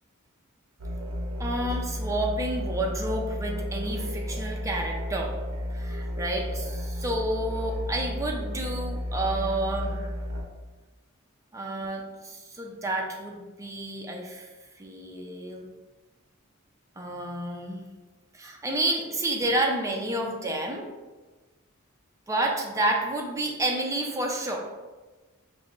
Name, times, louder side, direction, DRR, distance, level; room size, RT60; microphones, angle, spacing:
sound 1, 0.8-10.4, left 1 dB, 70° right, 0.7 m, -32 dB
voice 1, 1.4-5.3 5.7-9.9 11.5-14.5 14.8-15.7 17.0-17.8 18.3-20.9 22.3-24.6, right 1 dB, 15° right, 0 dB, 0.5 m, -30 dB
5.1 x 2.1 x 3.0 m, 1.3 s
head